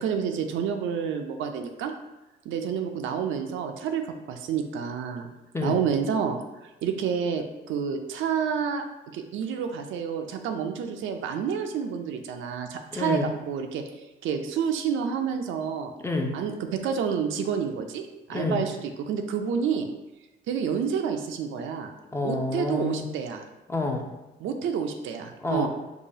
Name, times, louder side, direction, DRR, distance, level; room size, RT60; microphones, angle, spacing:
voice 1, 0.0-1.9 2.5-5.3 5.6-6.4 6.8-8.8 9.1-13.2 13.5-13.8 14.2-15.9 16.3-18.0 18.3-18.7 19.1-19.9 20.5-21.9 22.2-23.4 24.4-25.7, right 7 dB, 80° right, 5 dB, 0.4 m, -29 dB
voice 2, 12.9-13.3 16.0-16.4 18.3-18.6 22.1-23.1 23.7-24.1 25.4-25.7, left 3 dB, 15° left, 2 dB, 0.4 m, -28 dB
4.8 x 2.2 x 2.7 m, 1.0 s
cardioid pair, 90°, 20 cm